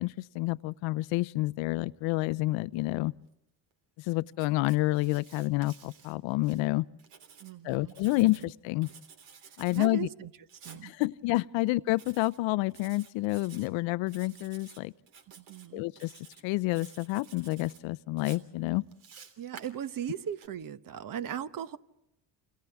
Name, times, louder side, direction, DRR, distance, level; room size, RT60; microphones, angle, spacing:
voice 1, 0.0-3.1 4.0-6.9 7.6-8.9 9.6-10.1 10.8-14.9 15.7-16.1 16.4-18.8, left 20 dB, 70° left, 0.7 m, -29 dB
Writing, 4.3-6.6 7.0-8.5 8.8-9.9 10.5-10.8 11.9-12.4 12.7-13.7 14.1-14.8 15.1-15.7 16.0-16.4 16.7-17.8 18.2-20.5, right 6 dB, 75° right, 3.3 m, -53 dB
voice 2, 7.4-8.5 9.7-10.3 10.6-10.9 15.4-15.8 19.4-21.8, right 9 dB, 45° right, 1.1 m, -38 dB
29.0 x 26.5 x 3.5 m
supercardioid pair, 95°, 47 cm